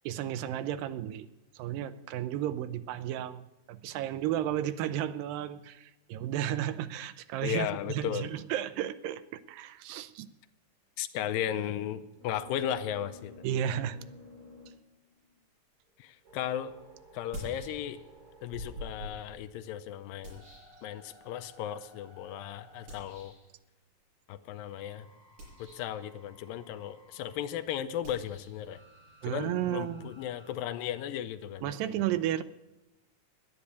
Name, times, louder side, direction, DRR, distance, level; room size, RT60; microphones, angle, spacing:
voice 1, 0.1-1.3 1.6-3.4 3.7-9.2 9.5-10.3 13.4-14.0 29.2-30.1 31.6-32.4, right 11 dB, 85° right, 13 dB, 2.3 m, -33 dB
voice 2, 7.4-8.3 11.0-13.3 16.0-16.7 17.1-18.0 18.4-20.4 20.8-23.3 24.3-25.1 25.6-28.8 29.2-31.7, left 10 dB, 85° left, 10 dB, 2.4 m, -35 dB
sound 1, 12.1-15.4 15.9-19.4 19.9-23.6 24.7-27.4 28.7-30.5, left 2 dB, 30° right, 4.0 m, -56 dB
sound 2, 16.2-16.3 17.1-18.2 18.5-21.4 22.9-23.5 25.2-26.0 28.0-30.6, equal, 60° right, 7.1 m, -47 dB
11.0 x 10.0 x 8.1 m, 0.97 s
omnidirectional pair, 4.0 m